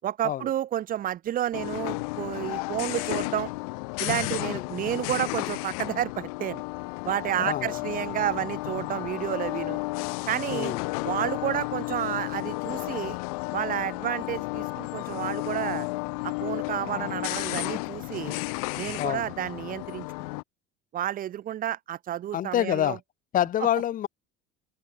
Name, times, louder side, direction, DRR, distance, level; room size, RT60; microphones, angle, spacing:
voice 1, 0.0-3.5 4.0-6.6 7.0-9.8 10.3-10.8 11.0-13.2 13.5-15.9 16.2-18.4 18.8-20.1 20.9-23.0, right 11 dB, 50° right, 7.2 m, -30 dB
sound 1, 1.5-20.4, left 28 dB, 85° left, 5.4 m, -33 dB
voice 2, 7.4-7.8 10.5-10.8 19.0-19.3 22.3-23.0 23.3-24.1, left 11 dB, 50° left, 2.6 m, -27 dB
supercardioid pair, 100°, 18 cm